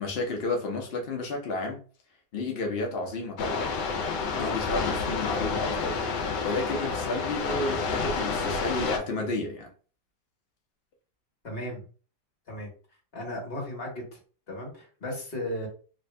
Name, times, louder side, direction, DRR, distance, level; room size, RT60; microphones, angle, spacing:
voice 1, 0.0-1.8 2.3-3.7 4.3-9.7, left 2 dB, 90° left, 0.5 m, -31 dB
sound 1, 3.4-9.0, left 4 dB, 70° left, 1.2 m, -29 dB
voice 2, 11.4-11.8 12.5-12.7 13.1-14.2 14.5-15.7, left 1 dB, 35° left, 1.4 m, -35 dB
3.2 x 2.6 x 3.2 m
omnidirectional pair, 2.1 m